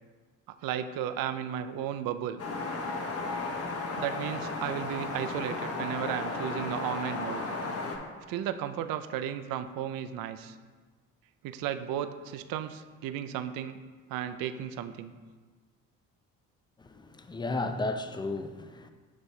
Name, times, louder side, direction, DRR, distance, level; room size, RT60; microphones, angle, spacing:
voice 1, 0.6-2.4 4.0-7.5 8.3-10.5 11.4-13.8 14.1-15.1, right 10 dB, 60° right, 0.5 m, -34 dB
sound 1, 2.4-8.0, left 3 dB, 35° left, 1.2 m, -34 dB
voice 2, 16.8-18.9, left 2 dB, 10° left, 0.5 m, -34 dB
8.4 x 6.2 x 2.2 m
hypercardioid pair, 55°, 40 cm